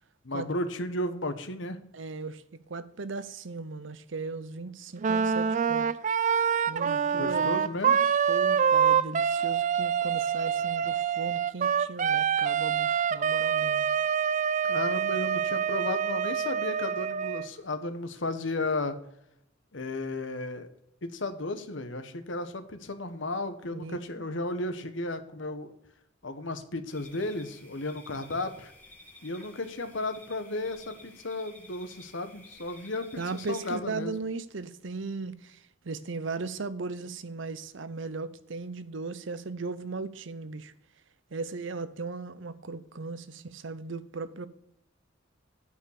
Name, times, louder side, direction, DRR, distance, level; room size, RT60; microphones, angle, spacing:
voice 1, 0.2-1.8 7.1-8.1 14.6-19.0 19.7-20.7 21.0-25.7 26.2-28.7 29.2-34.1, left 2 dB, 65° left, 1.1 m, -34 dB
voice 2, 1.9-5.9 6.7-7.6 8.3-13.9 23.7-24.2 33.2-40.7 41.3-44.5, right 4 dB, 65° right, 0.7 m, -37 dB
Wind instrument woodwind instrument, 5.0-17.5, right 7 dB, 40° right, 0.4 m, -26 dB
sound 1, 26.9-33.8, left 2 dB, 10° left, 1.8 m, -53 dB
8.8 x 5.6 x 6.5 m
head